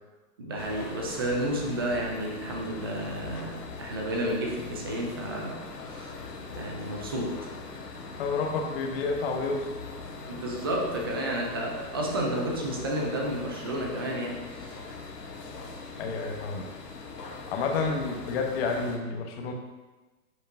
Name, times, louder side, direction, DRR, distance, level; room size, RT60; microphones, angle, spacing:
voice 1, 0.4-5.6 5.9-6.1 6.6-7.5 10.3-14.8, right 1 dB, 15° right, 0 dB, 0.4 m, -31 dB
sound 1, 0.6-19.0, left 3 dB, 90° left, 1.2 m, -41 dB
voice 2, 8.2-9.6 16.0-16.7 17.5-19.5, left 4 dB, 40° left, 2 dB, 1.1 m, -29 dB
7.9 x 5.0 x 2.7 m, 1.2 s
hypercardioid pair, 135°, 47 cm